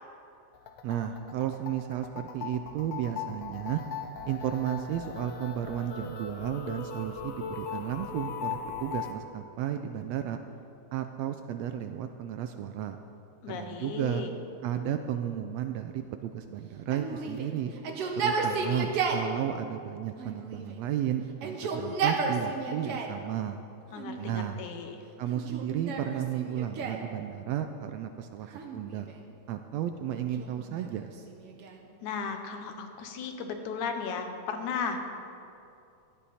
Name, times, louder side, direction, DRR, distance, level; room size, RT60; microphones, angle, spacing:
sound 1, 0.5-9.1, left 6 dB, 65° left, 1.4 m, -39 dB
voice 1, 0.8-3.8 4.2-10.4 10.9-13.0 13.5-14.2 14.6-17.7 18.2-23.6 24.2-24.6 25.2-28.5 28.7-29.1 29.5-31.1, right 10 dB, 80° right, 7 dB, 1.6 m, -33 dB
voice 2, 13.4-14.3 23.9-25.0 32.0-35.1, left 5 dB, 85° left, 5 dB, 2.5 m, -35 dB
Yell, 16.9-19.3 20.2-20.9 21.3-23.2 23.9-24.6 25.3-27.1 28.5-29.3 30.2-31.9, right 4 dB, 60° right, 1.8 m, -33 dB
17.0 x 12.5 x 4.2 m, 2.6 s
omnidirectional pair, 3.4 m